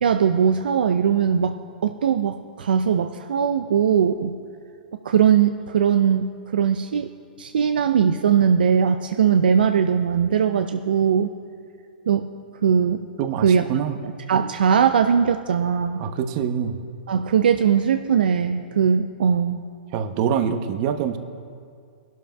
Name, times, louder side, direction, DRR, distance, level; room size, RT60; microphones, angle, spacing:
voice 1, 0.0-4.3 5.0-7.1 7.4-11.3 12.1-12.3 12.6-13.0 13.4-13.6 14.3-16.0 17.1-19.6, right 7 dB, 75° right, 7 dB, 0.4 m, -20 dB
voice 2, 13.2-14.0 16.0-16.8 19.9-21.2, right 8 dB, 45° right, 8 dB, 0.9 m, -25 dB
24.0 x 12.0 x 2.3 m, 2.2 s
hypercardioid pair, 115°, 5 cm